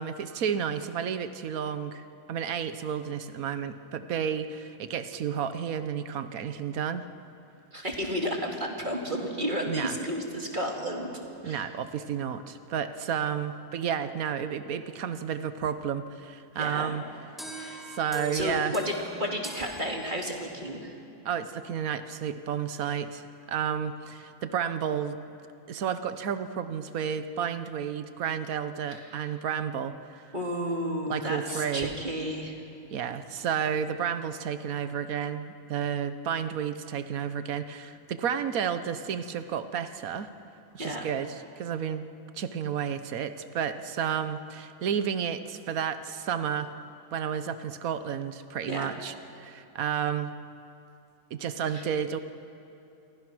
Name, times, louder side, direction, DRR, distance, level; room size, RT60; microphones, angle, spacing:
voice 1, 0.0-7.0 9.7-10.0 11.4-17.0 17.8-18.7 21.2-23.2 23.5-25.2 25.7-30.3 31.1-31.9 32.9-40.3 40.7-42.1 42.3-46.7 47.1-50.3 51.3-52.2, right 8 dB, 80° right, 11 dB, 1.4 m, -31 dB
voice 2, 7.7-11.1 11.4-11.7 16.6-16.9 17.5-17.9 18.3-20.9 28.9-29.3 30.3-32.6 40.8-41.1 48.7-48.9 51.7-51.8, equal, 35° right, 1 dB, 2.8 m, -32 dB
sound 1, 17.4-20.7, equal, ahead, 3.0 m, -42 dB
28.5 x 23.5 x 6.2 m, 2.8 s
omnidirectional pair, 1.5 m